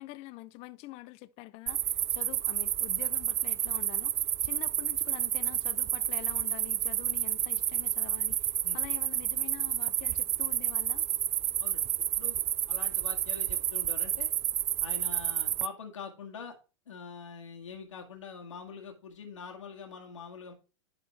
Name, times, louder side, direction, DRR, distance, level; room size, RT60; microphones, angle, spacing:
voice 1, 0.0-11.1, left 18 dB, 40° left, 0.6 m, -46 dB
sound 1, 1.7-15.7, right 11 dB, 20° right, 0.3 m, -30 dB
voice 2, 12.7-14.3 14.8-16.5 16.9-20.5, left 6 dB, 90° left, 2.1 m, -44 dB
11.5 x 4.4 x 4.6 m
hypercardioid pair, 115°, 16 cm